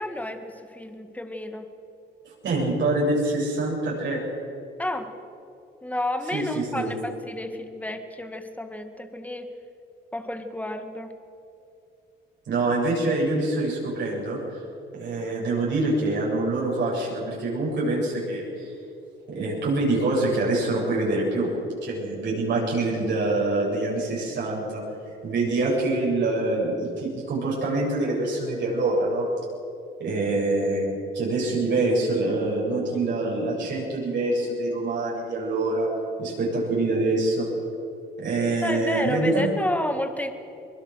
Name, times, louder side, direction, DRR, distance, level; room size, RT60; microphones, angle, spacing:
voice 1, 0.0-1.7 4.8-5.1 5.8-9.5 10.1-11.1 38.6-40.3, left 1 dB, 5° left, 7 dB, 2.0 m, -31 dB
voice 2, 2.4-4.2 6.3-6.9 12.5-14.6 15.0-18.7 19.3-21.5 21.8-24.8 25.2-29.3 30.0-35.9 36.2-37.5 38.2-39.5, right 2 dB, 65° right, -4 dB, 7.5 m, -25 dB
23.5 x 21.0 x 6.4 m, 2.7 s
cardioid pair, 90°, 20 cm